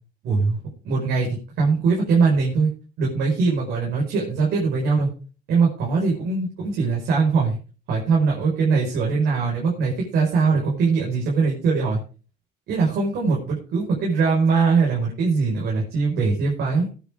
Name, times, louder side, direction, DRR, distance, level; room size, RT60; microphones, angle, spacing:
voice 1, 0.2-0.6 0.8-1.3 1.6-2.7 3.0-5.1 5.5-7.6 7.9-12.0 12.7-16.9, right 4 dB, 75° right, -2 dB, 4.9 m, -21 dB
18.5 x 9.4 x 3.5 m, 0.36 s
cardioid pair, 110°, 17 cm